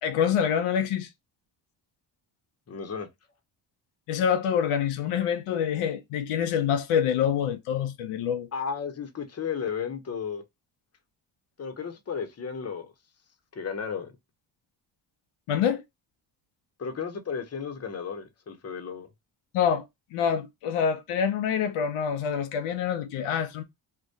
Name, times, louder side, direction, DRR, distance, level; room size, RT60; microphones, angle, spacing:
voice 1, 0.0-1.1 4.1-8.5 15.5-15.8 19.5-19.8 20.1-23.6, left 8 dB, 85° left, 0.6 m, -26 dB
voice 2, 2.7-3.1 8.5-10.4 11.6-12.9 13.5-14.1 16.8-19.1, left 6 dB, 30° left, 0.7 m, -34 dB
2.2 x 2.1 x 2.6 m
supercardioid pair, 55°, 50 cm